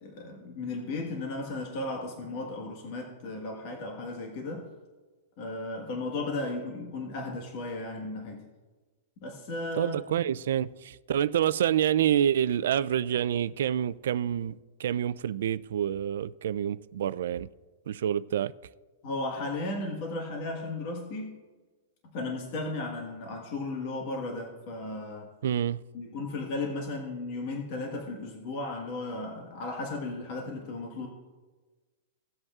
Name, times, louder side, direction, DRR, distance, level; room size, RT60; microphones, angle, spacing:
voice 1, 0.0-4.7 5.4-8.5 9.2-9.9 19.0-21.4 22.1-25.3 25.9-31.1, left 2 dB, 40° left, 1.4 m, -35 dB
voice 2, 9.8-17.5 17.9-18.5 25.4-25.8, right 10 dB, 70° right, 0.3 m, -27 dB
17.5 x 7.8 x 2.4 m
supercardioid pair, 165°, 0 cm